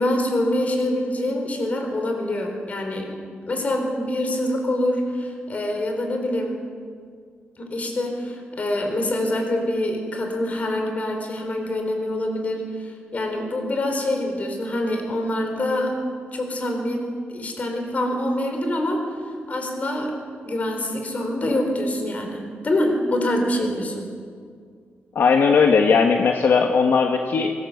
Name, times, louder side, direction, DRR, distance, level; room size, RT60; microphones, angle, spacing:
voice 1, 0.0-6.6 7.6-16.0 16.3-19.1 19.5-24.1, left 1 dB, 35° left, 3 dB, 4.5 m, -25 dB
voice 2, 25.1-27.5, left 5 dB, 65° left, 3 dB, 1.5 m, -18 dB
24.0 x 19.5 x 8.0 m, 2.1 s
wide cardioid pair, 165°, 4 cm